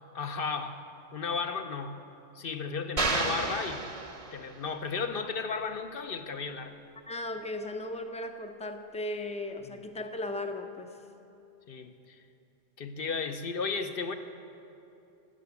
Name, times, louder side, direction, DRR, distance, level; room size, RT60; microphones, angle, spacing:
voice 1, 0.1-0.9 1.1-2.0 2.4-3.9 4.3-6.7 9.6-9.8 11.7-12.2 12.8-14.1, left 5 dB, 60° left, 7 dB, 0.8 m, -34 dB
sound 1, 3.0-4.7, right 3 dB, 35° right, 0.8 m, -31 dB
voice 2, 7.1-10.9, left 1 dB, 10° left, 6 dB, 0.4 m, -36 dB
15.0 x 6.8 x 8.3 m, 2.8 s
omnidirectional pair, 1.2 m